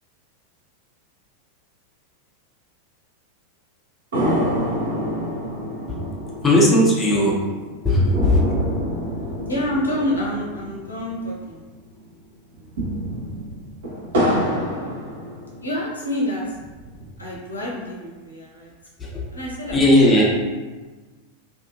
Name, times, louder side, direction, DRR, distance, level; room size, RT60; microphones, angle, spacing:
sound 1, 4.1-11.7 12.0-12.1 12.5-15.9 16.4-17.4, equal, 60° right, 0.8 m, -27 dB
voice 1, 6.4-7.5 7.8-8.6 19.0-19.3 19.7-20.2, left 1 dB, 15° left, -4 dB, 0.7 m, -17 dB
voice 2, 9.4-11.6 15.6-16.6 17.2-18.7 19.3-19.8, left 1 dB, 80° left, -4 dB, 0.6 m, -27 dB
2.6 x 2.5 x 2.5 m, 1.3 s
figure-of-eight pair, 90°, 0 cm